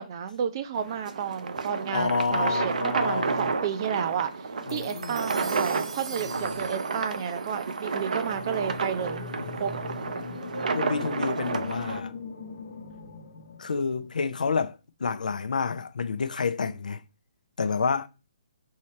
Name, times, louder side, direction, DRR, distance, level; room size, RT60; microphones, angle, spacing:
voice 1, 0.0-4.3 4.7-9.2 9.6-9.7, right 8 dB, 35° right, 0.6 m, -31 dB
sound 1, 0.7-12.0, right 4 dB, 75° right, 0.7 m, -31 dB
voice 2, 1.9-3.5 4.7-5.2 9.4-9.5 10.7-12.1 13.6-17.0 17.6-18.1, left 5 dB, 90° left, 0.6 m, -29 dB
sound 2, 4.7-9.2, right 4 dB, 50° right, 1.0 m, -45 dB
sound 3, 8.2-14.4, left 5 dB, 50° left, 1.0 m, -40 dB
3.8 x 3.2 x 4.2 m
hypercardioid pair, 165°, 4 cm